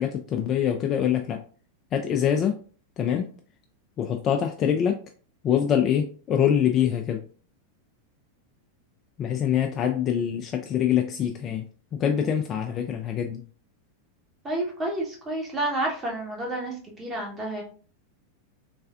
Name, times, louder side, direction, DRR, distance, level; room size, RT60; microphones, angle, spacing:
voice 1, 0.0-1.4 1.9-2.6 3.0-3.3 4.0-5.0 5.4-7.2 9.2-11.7 11.9-13.4, left 9 dB, 30° left, 0.3 m, -24 dB
voice 2, 14.4-17.6, right 1 dB, 20° right, 1.0 m, -30 dB
3.3 x 3.1 x 2.4 m
figure-of-eight pair, 90°, 0 cm